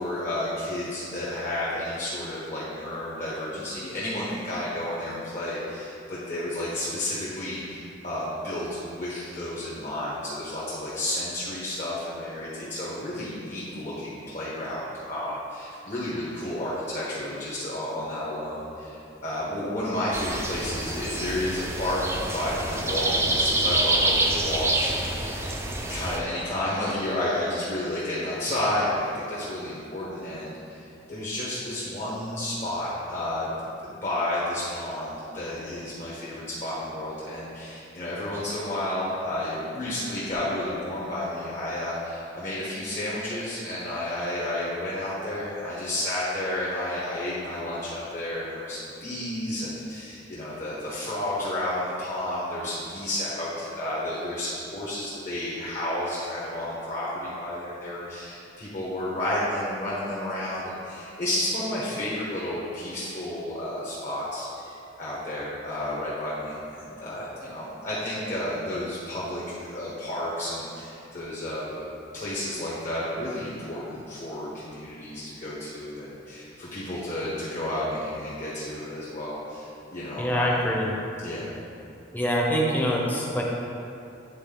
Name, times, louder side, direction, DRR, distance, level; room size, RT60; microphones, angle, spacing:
voice 1, 0.0-25.6 25.9-33.5 33.9-71.8 72.1-80.6 81.2-81.5, left 1 dB, 40° left, -8 dB, 1.2 m, -31 dB
sound 1, 20.1-26.2, right 2 dB, 15° right, 0.5 m, -27 dB
voice 2, 80.2-80.9 82.1-83.4, equal, 10° left, -3 dB, 0.8 m, -25 dB
9.4 x 3.8 x 3.9 m, 2.6 s
head